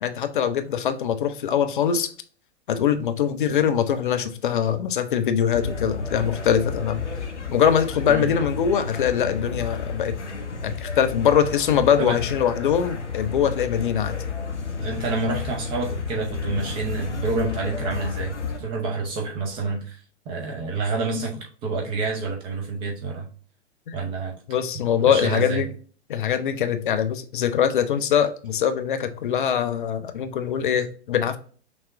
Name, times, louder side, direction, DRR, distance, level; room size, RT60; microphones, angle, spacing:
voice 1, 0.0-2.1 2.7-7.0 7.5-10.2 10.6-14.2 23.9-24.0 24.5-25.7 26.1-31.4, left 8 dB, 45° left, 0.5 m, -22 dB
sound 1, 5.5-18.6, left 4 dB, 80° left, 0.8 m, -31 dB
voice 2, 14.8-20.0 20.3-23.3 23.9-24.3 25.0-25.6, right 3 dB, 15° right, 0.4 m, -28 dB
6.0 x 2.2 x 3.5 m
figure-of-eight pair, 110°, 34 cm